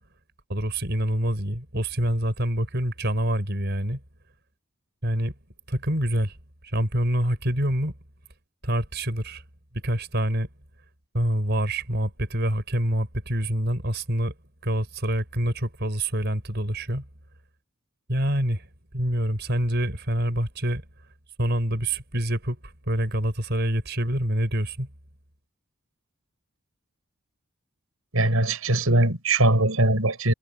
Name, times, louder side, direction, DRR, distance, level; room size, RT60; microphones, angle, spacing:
voice 1, 0.5-4.0 5.0-5.3 5.7-6.4 6.6-7.9 8.6-9.4 9.7-10.5 11.1-14.3 14.6-17.1 18.1-18.7 18.9-20.8 21.4-24.9, right 1 dB, 50° right, 5.2 m, -26 dB
voice 2, 28.1-30.3, right 2 dB, 85° right, 6.7 m, -21 dB
head